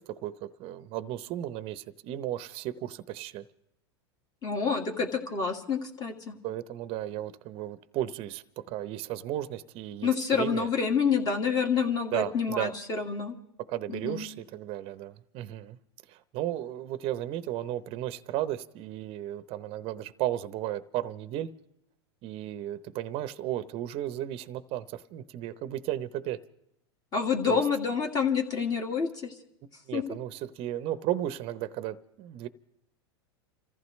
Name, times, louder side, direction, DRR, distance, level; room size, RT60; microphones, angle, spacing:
voice 1, 0.0-3.4 6.4-10.7 12.1-12.7 13.7-15.8 16.1-21.5 22.2-26.4 27.5-27.6 29.9-32.5, right 13 dB, 40° right, 0.8 m, -34 dB
voice 2, 4.4-6.4 10.0-13.3 13.9-14.2 27.1-29.3 29.9-30.0, left 6 dB, 30° left, 2.2 m, -28 dB
29.5 x 14.5 x 3.2 m
hypercardioid pair, 120°, 14 cm